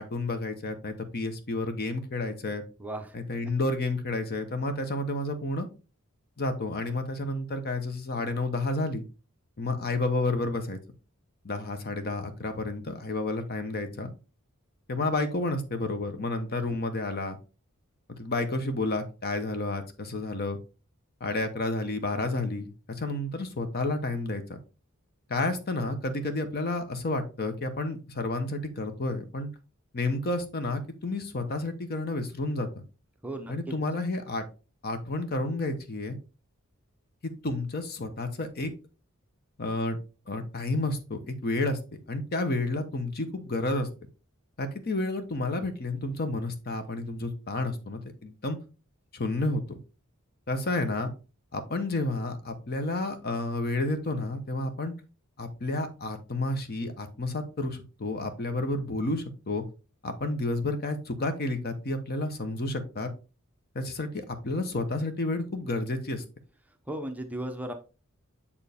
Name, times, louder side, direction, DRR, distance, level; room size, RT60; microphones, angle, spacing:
voice 1, 0.0-2.6 3.1-5.7 6.4-9.0 9.6-10.8 11.4-14.1 14.9-17.4 18.1-20.6 21.2-24.4 25.3-29.5 29.9-32.7 33.5-34.4 34.8-36.2 37.4-38.7 39.6-40.0 40.3-41.8 42.1-43.9 44.6-48.6 49.1-49.8 50.5-51.1 51.5-54.9 55.4-59.6 60.0-63.1 63.7-66.2, left 2 dB, 45° left, 8 dB, 0.9 m, -30 dB
voice 2, 2.8-3.1 33.2-33.5 66.9-67.7, right 1 dB, 5° right, 5 dB, 0.6 m, -35 dB
7.0 x 4.6 x 3.4 m, 0.32 s
head